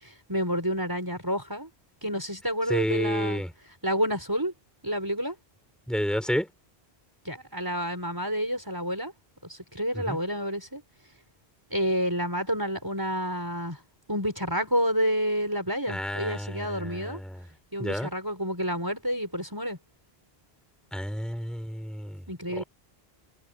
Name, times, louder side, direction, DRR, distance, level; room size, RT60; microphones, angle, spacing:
voice 1, 0.0-1.7 2.0-3.4 3.8-4.5 4.8-5.3 7.2-9.1 9.4-10.8 11.7-13.8 14.1-17.2 17.7-19.8 22.3-22.6, equal, 20° right, 4.9 m, -29 dB
voice 2, 2.7-3.5 5.9-6.5 10.1-10.2 15.9-17.4 17.8-18.1 20.9-22.2 22.6-22.7, equal, ahead, 5.7 m, -30 dB
omnidirectional pair, 1.1 m